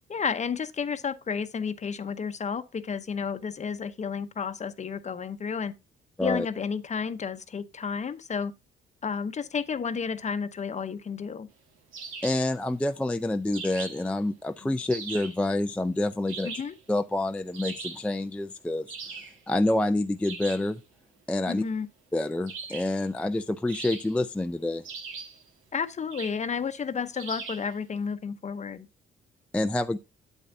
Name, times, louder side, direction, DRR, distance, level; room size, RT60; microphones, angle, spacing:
voice 1, 0.1-5.7 6.2-8.5 9.0-11.5 14.6-14.7 16.4-16.8 21.5-21.9 25.7-28.9, left 6 dB, 35° left, 0.8 m, -31 dB
sound 1, 11.9-12.5 13.5-14.1 14.9-15.4 16.3-16.8 17.5-18.1 18.9-19.4 20.2-20.7 22.5-23.0 23.7-24.3 24.8-25.4 26.1-26.5 27.2-27.7, right 5 dB, 90° right, 1.7 m, -40 dB
voice 2, 12.2-16.5 16.9-18.9 19.5-20.8 21.3-21.6 22.1-24.8 29.5-30.0, left 1 dB, 5° left, 0.4 m, -27 dB
8.7 x 8.2 x 2.7 m
cardioid pair, 90°, 20 cm